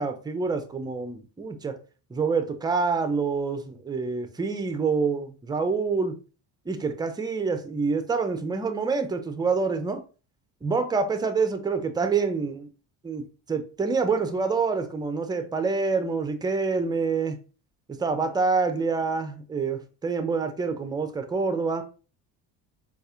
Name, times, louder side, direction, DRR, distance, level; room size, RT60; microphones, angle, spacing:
voice 1, 0.0-1.8 2.1-6.1 6.7-10.0 10.6-12.7 13.0-17.4 18.0-21.8, right 4 dB, 10° right, 0.3 m, -27 dB
4.0 x 2.4 x 2.4 m
supercardioid pair, 70°, 50 cm